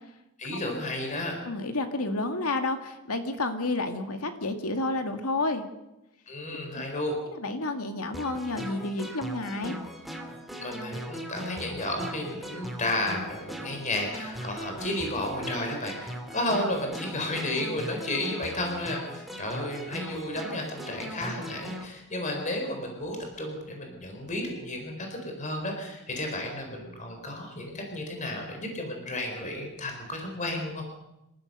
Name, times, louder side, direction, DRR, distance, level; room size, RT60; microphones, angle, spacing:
voice 1, 0.4-1.4 6.3-7.1 10.6-30.8, left 1 dB, 35° left, 3 dB, 4.3 m, -32 dB
voice 2, 1.5-5.6 7.3-9.7, left 2 dB, 80° left, 6 dB, 2.1 m, -30 dB
sound 1, 8.1-21.9, equal, ahead, 2.3 m, -39 dB
26.5 x 15.0 x 6.7 m, 0.92 s
head